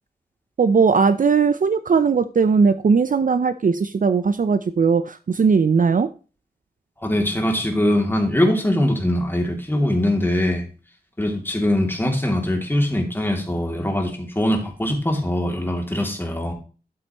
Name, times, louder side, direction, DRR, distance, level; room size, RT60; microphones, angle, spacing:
voice 1, 0.6-6.1, right 5 dB, 50° right, 12 dB, 0.5 m, -18 dB
voice 2, 7.0-10.6 11.2-16.5, left 1 dB, 10° left, 2 dB, 2.6 m, -22 dB
12.0 x 7.7 x 3.0 m, 0.35 s
wide cardioid pair, 100°, 17 cm